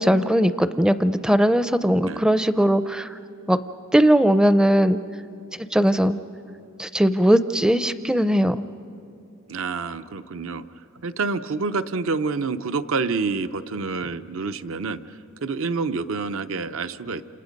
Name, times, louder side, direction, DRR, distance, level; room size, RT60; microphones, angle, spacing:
voice 1, 0.0-3.1 3.5-3.6 3.9-5.0 5.7-6.2 6.8-8.6, equal, 5° right, 12 dB, 0.5 m, -19 dB
voice 2, 9.5-10.6 11.0-15.0 15.4-17.2, right 4 dB, 70° right, 11 dB, 0.7 m, -27 dB
29.0 x 28.0 x 5.3 m, 2.7 s
head